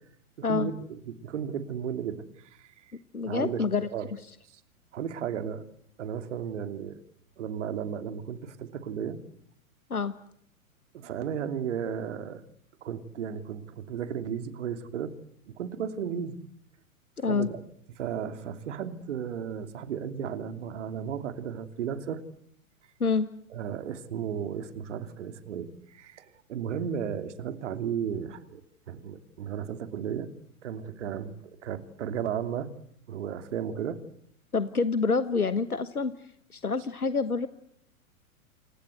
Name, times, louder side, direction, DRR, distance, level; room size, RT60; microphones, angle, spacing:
voice 1, 0.4-2.8 3.2-4.1 4.9-5.6 6.0-7.0 7.4-9.2 10.9-12.4 12.8-15.1 15.5-16.4 17.3-17.6 18.0-22.2 23.5-28.6 28.9-30.3 30.6-32.7 33.1-34.0, right 8 dB, 55° right, 9 dB, 3.0 m, -34 dB
voice 2, 3.1-3.9 9.9-10.1 17.2-17.5 23.0-23.3 34.5-37.5, left 4 dB, 80° left, 13 dB, 1.4 m, -27 dB
29.5 x 25.0 x 8.1 m, 0.71 s
figure-of-eight pair, 100°, 43 cm